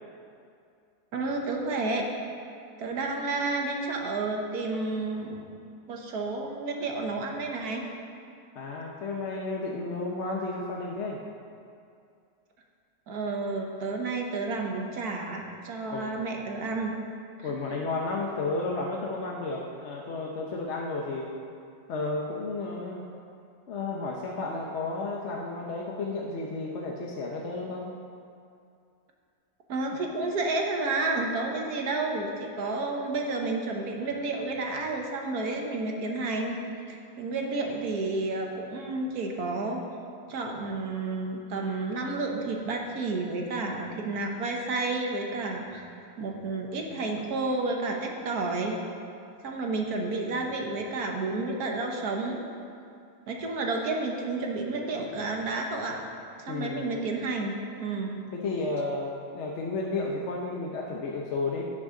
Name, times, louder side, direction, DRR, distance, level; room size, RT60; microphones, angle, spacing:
voice 1, 1.1-2.1 2.8-5.5 5.9-7.8 13.1-16.9 17.4-17.5 29.7-36.6 36.9-39.8 40.3-45.9 46.2-48.8 49.4-52.4 53.3-56.0 56.4-58.2, right 3 dB, 70° right, 1 dB, 1.5 m, -31 dB
voice 2, 8.5-11.2 15.9-16.1 17.4-21.3 21.9-23.0 23.7-27.9 56.5-57.0 58.3-61.7, left 3 dB, 55° left, -1 dB, 0.9 m, -32 dB
16.5 x 6.2 x 3.8 m, 2.4 s
omnidirectional pair, 1.7 m